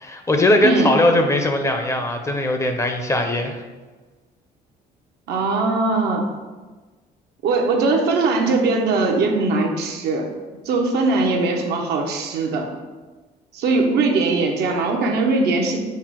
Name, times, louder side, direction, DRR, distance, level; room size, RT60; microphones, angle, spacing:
voice 1, 0.0-3.6, left 1 dB, 15° left, 4 dB, 0.5 m, -19 dB
voice 2, 0.6-0.9 5.3-6.2 7.4-10.3 10.6-12.7 13.5-15.8, right 3 dB, 70° right, 2 dB, 0.7 m, -20 dB
5.7 x 2.0 x 4.6 m, 1.3 s
cardioid pair, 110°, 17 cm